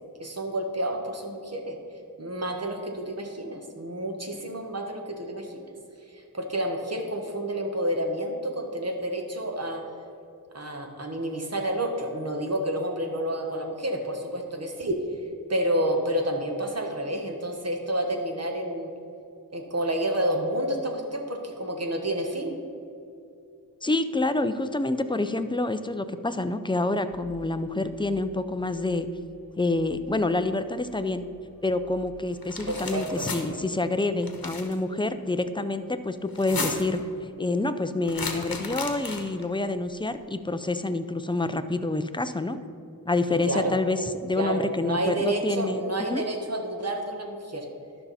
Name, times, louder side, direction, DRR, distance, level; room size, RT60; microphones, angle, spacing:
voice 1, 0.2-1.8 2.2-5.6 6.1-9.8 10.5-15.0 15.5-18.9 19.5-22.6 32.7-33.2 43.3-43.7 44.3-47.7, right 1 dB, 45° right, 2 dB, 1.3 m, -29 dB
voice 2, 23.8-29.1 29.6-31.2 31.6-37.0 37.4-42.6 43.1-45.8 46.1-46.2, left 2 dB, 15° left, 10 dB, 0.5 m, -27 dB
sound 1, 27.1-32.5, right 1 dB, 20° right, 1.6 m, -53 dB
sound 2, 32.4-33.4 34.2-34.7 36.3-37.0 38.1-39.4, left 4 dB, 75° left, 1.1 m, -34 dB
12.0 x 5.6 x 4.2 m, 2.6 s
wide cardioid pair, 45°, 36 cm